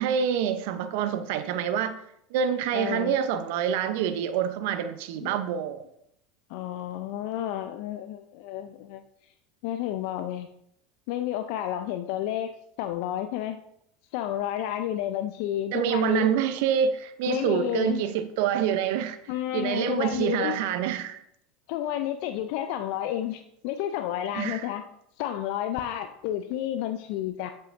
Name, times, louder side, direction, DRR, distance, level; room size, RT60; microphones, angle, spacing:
voice 1, 0.0-2.0 2.3-5.8 15.7-19.2 19.5-21.2 24.3-24.7, right 8 dB, 70° right, 0.5 m, -26 dB
voice 2, 2.7-3.2 5.2-5.3 6.5-9.0 9.6-10.5 11.1-13.6 14.1-16.3 17.3-18.1 19.3-20.6 21.7-24.8 25.2-27.5, left 11 dB, 65° left, 0.4 m, -31 dB
7.7 x 5.5 x 2.5 m
hypercardioid pair, 85°, 0 cm